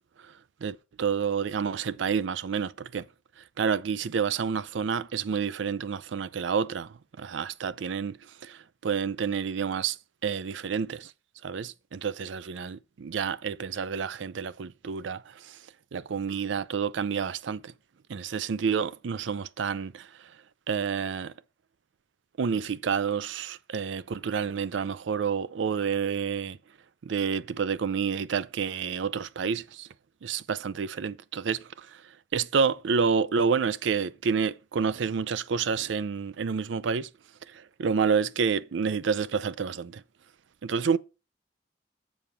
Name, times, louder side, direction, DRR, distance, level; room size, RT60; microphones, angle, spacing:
voice 1, 0.6-3.0 3.6-8.2 8.4-10.0 10.2-11.1 11.4-15.2 15.9-17.7 18.1-20.1 20.7-21.3 22.4-26.6 27.0-29.9 30.2-31.9 32.3-37.1 37.5-40.0 40.6-41.0, right 6 dB, 80° right, 0.4 m, -29 dB
7.2 x 4.8 x 5.7 m
head